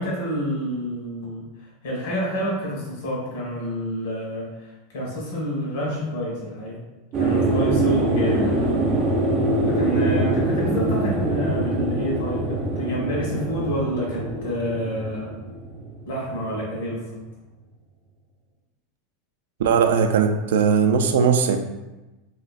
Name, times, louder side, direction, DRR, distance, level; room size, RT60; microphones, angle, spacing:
voice 1, 0.0-1.4 1.8-6.8 7.2-8.7 9.7-15.3 16.0-17.2, equal, 75° left, -3 dB, 1.4 m, -28 dB
sound 1, 7.1-16.4 16.7-16.8, right 2 dB, 25° right, 0.5 m, -24 dB
voice 2, 19.6-21.6, right 6 dB, 90° right, 6 dB, 0.4 m, -19 dB
3.6 x 3.0 x 2.4 m, 1.1 s
supercardioid pair, 170°, 0 cm